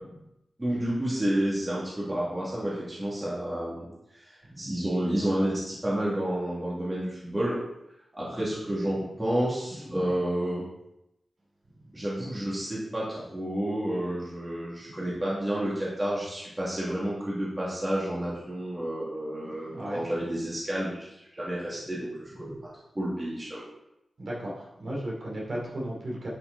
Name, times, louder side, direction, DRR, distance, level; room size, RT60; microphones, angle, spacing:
voice 1, 0.6-7.6 8.1-10.6 11.9-21.1 21.3-22.1 22.4-22.5 22.9-23.7, right 1 dB, 20° right, -7 dB, 2.4 m, -30 dB
voice 2, 9.7-10.1 11.9-12.0 14.9-15.1 19.4-20.1 22.5-22.6 24.2-26.3, right 1 dB, 50° right, -5 dB, 3.6 m, -36 dB
11.5 x 6.0 x 4.0 m, 0.86 s
wide cardioid pair, 145°, 0 cm